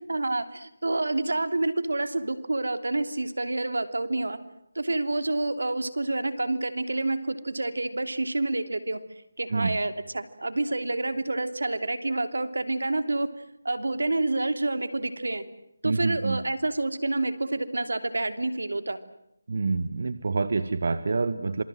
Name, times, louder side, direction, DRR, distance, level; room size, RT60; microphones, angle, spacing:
voice 1, 0.1-4.4 4.7-9.0 9.4-13.3 13.6-15.5 15.8-19.0, right 2 dB, 85° right, 10 dB, 3.1 m, -28 dB
voice 2, 15.8-16.4 19.5-21.6, right 4 dB, 55° right, 12 dB, 1.6 m, -27 dB
28.5 x 26.5 x 7.8 m, 0.79 s
figure-of-eight pair, 165°, 0 cm